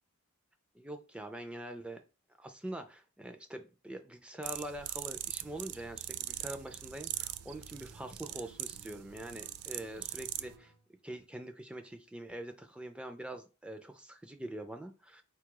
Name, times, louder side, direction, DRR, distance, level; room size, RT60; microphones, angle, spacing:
voice 1, 0.7-2.0 2.4-10.7 11.0-15.2, right 1 dB, 5° right, 6 dB, 0.4 m, -44 dB
sound 1, 4.4-10.6, right 14 dB, 90° right, 0.3 m, -41 dB
Acoustic guitar, 5.5-10.9, right 3 dB, 70° right, 0.7 m, -60 dB
4.4 x 2.3 x 4.6 m, 0.31 s
head